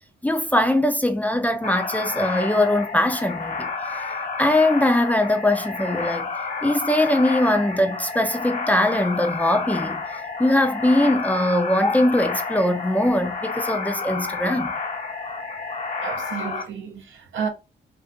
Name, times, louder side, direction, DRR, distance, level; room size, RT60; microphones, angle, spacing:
voice 1, 0.2-4.1 4.4-6.3 6.6-10.0 10.4-14.7, left 1 dB, 5° left, 0.5 m, -21 dB
sound 1, 1.6-16.6, left 4 dB, 40° left, 0.7 m, -30 dB
voice 2, 16.0-17.5, right 6 dB, 70° right, 0.7 m, -31 dB
2.5 x 2.4 x 2.4 m
supercardioid pair, 45°, 21 cm